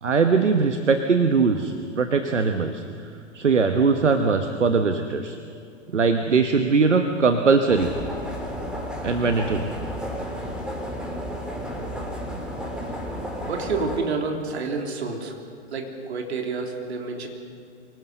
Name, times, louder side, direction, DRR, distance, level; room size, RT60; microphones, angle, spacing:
voice 1, 0.0-2.8 3.3-5.4 5.9-7.9 9.0-9.7, right 4 dB, 80° right, 7 dB, 1.3 m, -21 dB
sound 1, 7.7-14.0, equal, ahead, 3.5 m, -32 dB
voice 2, 13.5-15.3 15.7-17.3, right 4 dB, 65° right, 2 dB, 3.4 m, -29 dB
24.5 x 18.5 x 6.8 m, 2.6 s
figure-of-eight pair, 105°, 36 cm